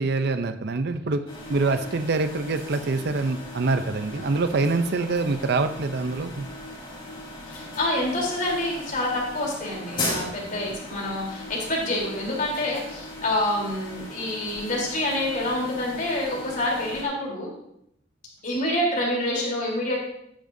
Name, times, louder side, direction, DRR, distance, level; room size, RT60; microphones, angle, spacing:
voice 1, 0.0-6.5, right 3 dB, 55° right, 10 dB, 0.6 m, -25 dB
sound 1, 1.3-17.0, left 1 dB, 25° left, 3.9 m, -38 dB
voice 2, 7.5-17.5 18.4-20.0, left 1 dB, 45° left, -2 dB, 3.6 m, -27 dB
12.5 x 10.0 x 2.7 m, 0.76 s
head